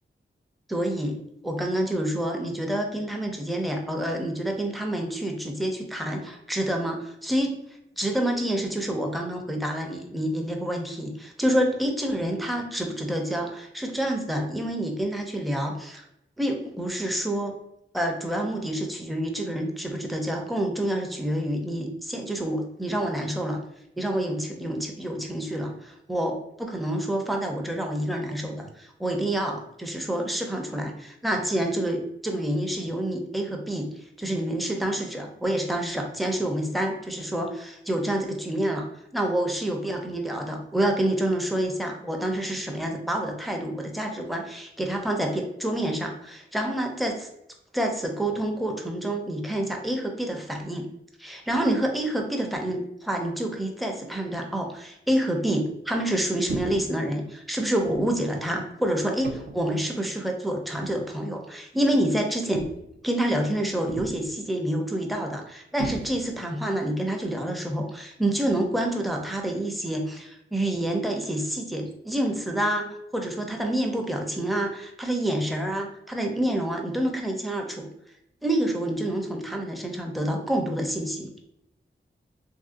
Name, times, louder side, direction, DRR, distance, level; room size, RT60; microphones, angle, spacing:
voice 1, 0.7-6.2 6.5-7.6 8.0-16.0 16.4-17.6 17.9-23.6 24.0-33.9 34.2-38.9 39.1-47.3 47.7-50.9 51.2-62.7 63.0-72.9 73.1-77.9 78.4-81.3, right 1 dB, ahead, 2 dB, 0.5 m, -28 dB
sound 1, 56.5-57.0 57.9-58.2 59.2-59.7 60.8-61.1 62.5-63.0 63.9-64.4 65.8-66.5, right 4 dB, 55° right, 0.4 m, -36 dB
3.1 x 2.6 x 2.5 m, 0.80 s
wide cardioid pair, 55°, 21 cm